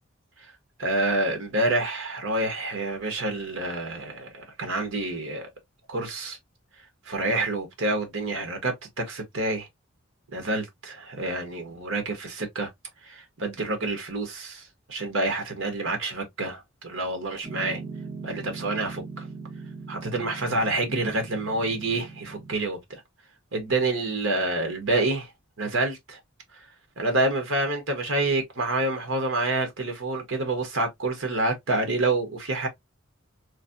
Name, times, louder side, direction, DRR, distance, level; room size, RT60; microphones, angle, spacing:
voice 1, 0.8-5.5 5.9-6.4 7.1-9.7 10.3-12.7 13.0-14.6 14.9-17.8 18.2-19.0 19.9-23.0 23.5-25.3 25.6-26.2 27.0-32.7, right 2 dB, 75° right, 1.3 m, -28 dB
Piano, 17.4-22.5, right 4 dB, 10° right, 0.7 m, -40 dB
3.2 x 2.7 x 2.6 m
head